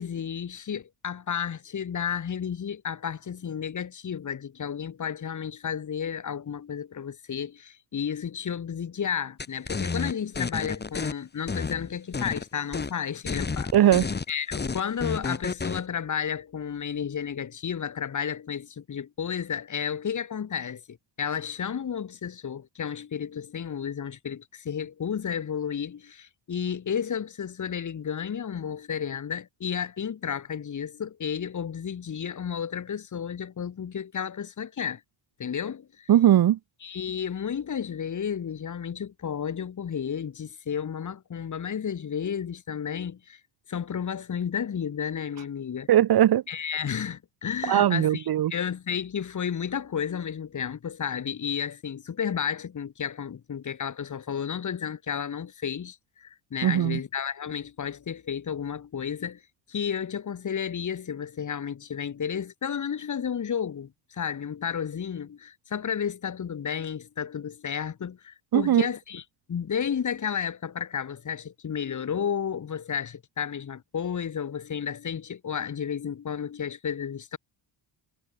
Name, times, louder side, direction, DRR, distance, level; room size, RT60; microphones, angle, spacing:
voice 1, 0.0-13.7 14.3-35.0 35.4-36.1 36.8-43.4 43.7-45.9 46.5-59.4 59.7-69.2 69.5-77.4, left 7 dB, 40° left, 3.0 m, -32 dB
sound 1, 9.4-11.1 11.5-12.4 12.7-12.9 13.3-15.8, left 4 dB, 20° left, 2.2 m, -30 dB
voice 2, 13.7-14.0 36.1-36.6 45.9-46.4 47.7-48.5 56.6-57.0 68.5-68.9, right 11 dB, 55° right, 1.2 m, -19 dB
cardioid pair, 135°, 46 cm